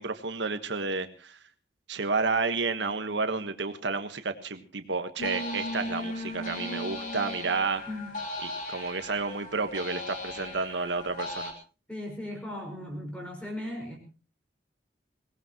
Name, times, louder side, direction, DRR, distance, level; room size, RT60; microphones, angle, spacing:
voice 1, 0.0-1.4 1.9-7.8 8.4-11.5, right 4 dB, 85° right, 8 dB, 1.4 m, -31 dB
sound 1, 5.2-11.5, left 1 dB, 45° left, 3.4 m, -37 dB
voice 2, 11.9-14.0, left 1 dB, 5° left, 1 dB, 5.1 m, -37 dB
23.0 x 18.5 x 3.1 m, 0.35 s
head